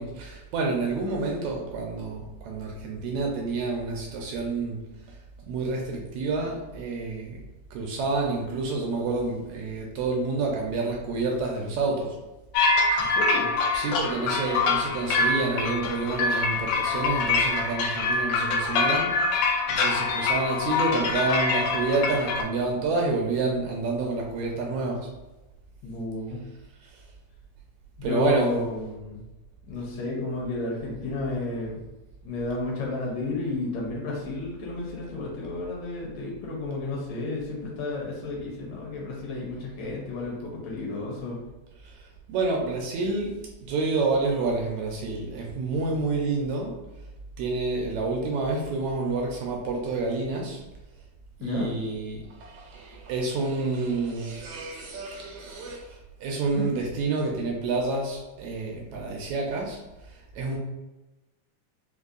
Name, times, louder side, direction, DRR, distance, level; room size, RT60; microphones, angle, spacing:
voice 1, 0.0-4.8 5.5-7.4 7.7-12.2 12.9-13.1 13.7-25.1 26.8-27.0 28.0-28.7 41.8-42.0 42.3-46.7 47.4-50.6 51.4-59.8 60.3-60.6, right 3 dB, 75° right, 0 dB, 1.8 m, -29 dB
sound 1, 12.5-22.4, left 3 dB, 90° left, 2.0 m, -25 dB
voice 2, 13.0-13.5 25.8-26.4 28.0-29.2 29.7-31.8 32.2-41.4 51.4-51.7 56.5-56.7, left 3 dB, 70° left, -3 dB, 1.9 m, -32 dB
5.3 x 2.1 x 2.4 m, 1.0 s
omnidirectional pair, 3.5 m